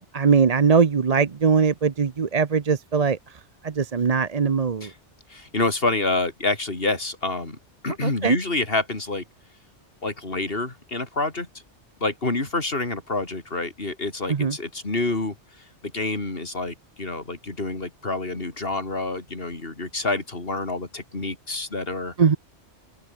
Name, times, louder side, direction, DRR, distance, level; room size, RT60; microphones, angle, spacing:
voice 1, 0.0-3.2 3.6-4.9 8.0-8.4 14.3-14.5 22.2-22.4, right 5 dB, 35° right, 0.8 m, -21 dB
voice 2, 5.3-7.6 7.8-9.2 10.0-11.5 12.0-15.4 15.8-22.1, left 2 dB, 50° left, 3.6 m, -27 dB
open air
omnidirectional pair, 1.2 m